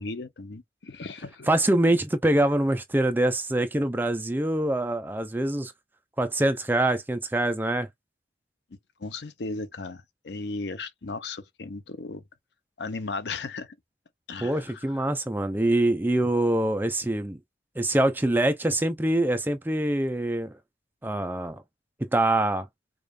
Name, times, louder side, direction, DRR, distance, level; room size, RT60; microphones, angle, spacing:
voice 1, 0.0-1.5 9.0-12.2 12.8-13.7 14.3-14.9, left 3 dB, 80° left, 0.7 m, -36 dB
voice 2, 1.5-5.7 6.2-7.9 14.4-17.4 17.8-20.5 21.0-21.6 22.1-22.7, right 1 dB, 10° right, 0.5 m, -24 dB
5.0 x 2.5 x 2.3 m
head